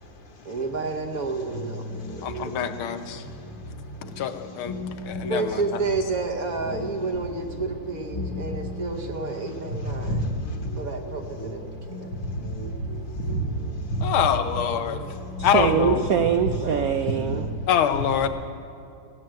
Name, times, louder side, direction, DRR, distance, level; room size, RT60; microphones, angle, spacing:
voice 1, 0.4-2.3 5.3-10.3 10.8-12.1 15.6-16.1 16.6-16.9, right 3 dB, 55° right, 3 dB, 1.2 m, -30 dB
sound 1, 0.6-17.7, left 1 dB, 20° left, 0.8 m, -37 dB
voice 2, 2.2-3.2 4.2-4.7 5.1-5.6 14.0-15.0 15.4-16.0 17.7-18.3, left 9 dB, 85° left, 9 dB, 1.7 m, -24 dB
voice 3, 9.7-10.7 12.1-12.5 13.1-14.1, right 1 dB, 65° left, 3 dB, 2.1 m, -28 dB
voice 4, 15.4-17.5, right 8 dB, 85° right, 8 dB, 0.7 m, -23 dB
16.5 x 10.5 x 7.6 m, 2.5 s
omnidirectional pair, 2.2 m